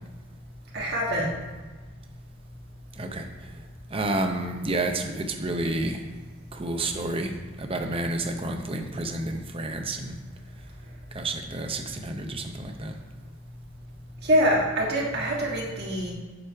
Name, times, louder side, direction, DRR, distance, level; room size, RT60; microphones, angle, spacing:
voice 1, 0.7-1.3 14.2-16.1, equal, 50° right, -3 dB, 1.6 m, -24 dB
voice 2, 3.0-3.5 3.9-6.0 6.5-10.2 11.1-12.9, right 2 dB, 25° right, 4 dB, 0.6 m, -30 dB
7.5 x 4.8 x 4.7 m, 1.3 s
head